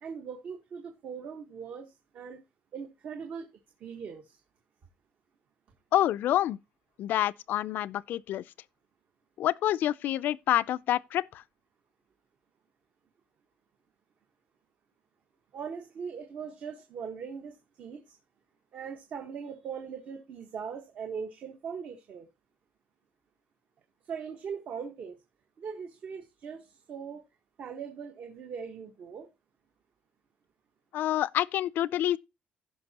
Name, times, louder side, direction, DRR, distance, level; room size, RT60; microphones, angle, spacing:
voice 1, 0.0-2.4 2.7-3.5 3.8-4.4 15.5-18.1 18.7-22.3 24.1-25.2 25.6-27.2 27.6-29.3, right 6 dB, 45° right, 1.4 m, -40 dB
voice 2, 5.9-6.6 7.0-8.4 9.4-11.4 30.9-32.2, left 12 dB, 60° left, 0.4 m, -27 dB
15.5 x 5.9 x 2.9 m
cardioid pair, 160°, 4 cm